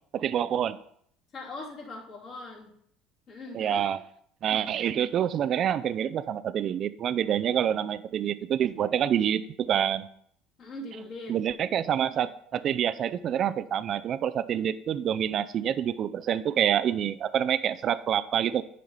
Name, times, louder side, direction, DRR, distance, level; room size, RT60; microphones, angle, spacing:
voice 1, 0.1-0.8 3.5-4.0 4.4-10.1 11.3-18.6, right 9 dB, 50° right, 14 dB, 0.4 m, -27 dB
voice 2, 1.3-2.7 3.3-3.8 10.6-11.3, left 2 dB, 50° left, -2 dB, 2.6 m, -41 dB
9.1 x 3.2 x 5.5 m, 0.66 s
supercardioid pair, 85°, 0 cm